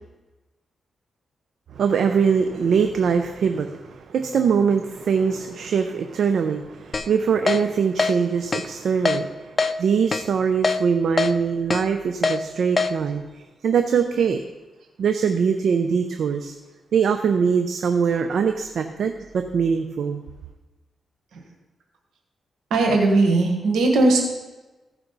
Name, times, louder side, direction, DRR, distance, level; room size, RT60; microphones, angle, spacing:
voice 1, 1.8-13.2 13.6-14.4 15.0-16.5 16.9-20.2, right 6 dB, 75° right, 6 dB, 0.6 m, -22 dB
Keyboard (musical), 6.9-7.1 7.5-7.6 8.0-8.1 8.5-8.7 9.1-9.2 9.6-9.7 10.1-10.2 10.6-10.8 11.2-11.3 11.7-11.8 12.2-12.4 12.8-12.9, left 4 dB, 35° left, 0.6 m, -21 dB
voice 2, 22.7-24.2, right 2 dB, 90° right, 1 dB, 1.6 m, -18 dB
15.5 x 5.9 x 4.0 m, 1.1 s
cardioid pair, 70°, 0 cm